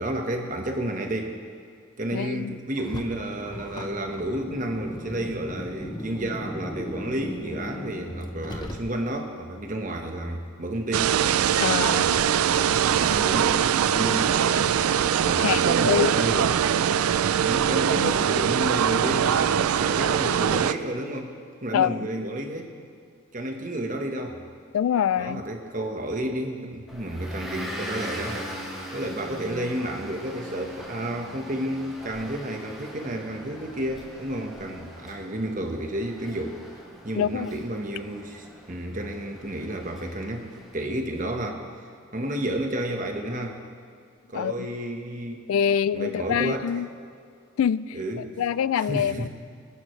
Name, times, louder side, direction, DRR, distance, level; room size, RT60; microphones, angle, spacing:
voice 1, 0.0-1.4 2.0-11.2 11.8-12.1 12.5-16.5 17.4-21.3 21.6-22.7 23.3-24.4 25.2-28.6 28.9-36.6 37.0-41.7 42.1-43.6 44.3-45.5 45.9-46.7 47.9-48.3 48.9-49.3, right 1 dB, 35° right, 3 dB, 1.2 m, -31 dB
voice 2, 2.1-2.6 11.6-12.0 15.4-16.1 18.0-18.1 21.7-22.1 24.7-25.4 37.1-37.5 44.3-44.7 45.5-46.9 47.6-48.0 48.4-49.3, left 8 dB, 75° left, 17 dB, 0.3 m, -25 dB
Car, 2.8-9.3, left 1 dB, 20° left, 0.7 m, -37 dB
sound 1, 10.9-20.7, right 8 dB, 85° right, 0.4 m, -22 dB
Motor vehicle (road) / Engine, 26.9-41.1, equal, ahead, 2.4 m, -41 dB
24.0 x 11.5 x 3.2 m, 2.3 s
head